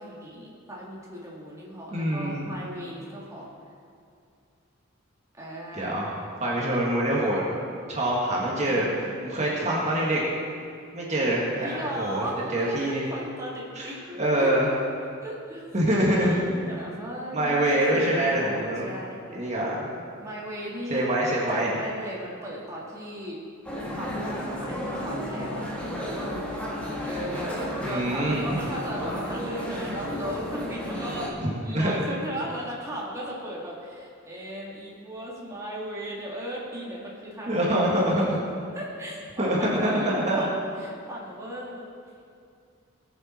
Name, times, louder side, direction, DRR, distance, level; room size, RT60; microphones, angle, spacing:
voice 1, 0.0-3.5 5.4-6.1 11.6-14.5 15.2-15.7 16.1-19.3 20.2-21.0 21.5-23.4 23.9-25.6 27.1-31.3 31.6-38.2 38.7-41.9, equal, 15° right, -5 dB, 2.0 m, -37 dB
voice 2, 1.9-2.4 5.7-6.1 6.4-7.4 7.9-10.2 10.9-13.0 13.8-13.9 14.2-14.7 15.7-16.4 17.3-18.9 19.3-19.9 20.9-21.8 27.8-28.6 31.4-31.9 37.5-38.4 39.4-40.4, right 1 dB, 35° right, -4 dB, 1.8 m, -25 dB
sound 1, 23.6-31.3, equal, 5° left, 1.6 m, -33 dB
19.5 x 6.9 x 4.4 m, 2.3 s
head